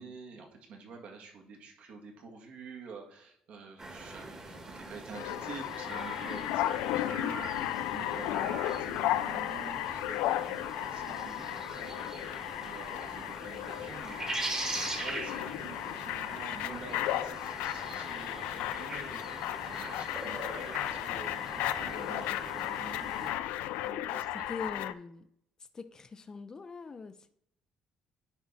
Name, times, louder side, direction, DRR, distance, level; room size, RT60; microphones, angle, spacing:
voice 1, 0.0-24.4, right 5 dB, 60° right, 2 dB, 1.6 m, -48 dB
sound 1, 3.8-23.3, right 2 dB, 25° right, 1.5 m, -42 dB
sound 2, 5.1-24.9, left 13 dB, 90° left, 0.4 m, -35 dB
voice 2, 24.5-25.3 25.6-27.3, left 4 dB, 25° left, 9 dB, 0.5 m, -42 dB
9.6 x 3.7 x 4.1 m, 0.70 s
cardioid pair, 120°, 3 cm